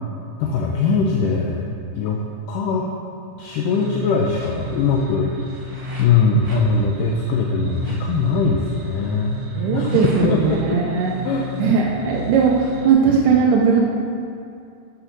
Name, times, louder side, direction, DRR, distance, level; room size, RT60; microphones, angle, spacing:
voice 1, 0.4-1.6 2.0-2.2 2.5-2.9 3.4-5.3 6.0-9.4 9.7-10.8 11.3-11.5, left 4 dB, 80° left, 0 dB, 2.2 m, -21 dB
sound 1, 3.4-12.9, left 1 dB, 20° right, 0.9 m, -32 dB
voice 2, 9.6-11.2 11.6-13.8, right 5 dB, 75° right, -2 dB, 2.2 m, -18 dB
12.5 x 6.9 x 3.9 m, 2.5 s
omnidirectional pair, 3.9 m